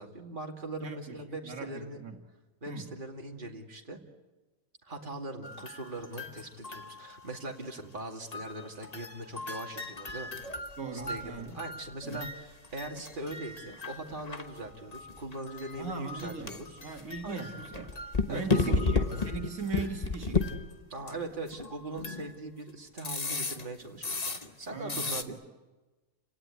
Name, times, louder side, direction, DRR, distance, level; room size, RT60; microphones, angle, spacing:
voice 1, 0.0-2.0 2.6-4.0 4.8-10.3 10.9-16.8 17.2-17.5 18.3-18.8 20.9-25.4, right 2 dB, 35° right, 1 dB, 2.6 m, -41 dB
voice 2, 0.8-2.2 2.7-2.9 10.8-11.6 12.0-12.3 15.8-18.0 18.3-20.6 24.7-25.3, right 4 dB, 75° right, 3 dB, 2.1 m, -40 dB
sound 1, 5.4-7.5 8.3-22.4 23.0-24.6 24.9-25.2, left 3 dB, 30° left, 1.2 m, -35 dB
29.5 x 17.5 x 9.5 m, 1.2 s
omnidirectional pair, 1.5 m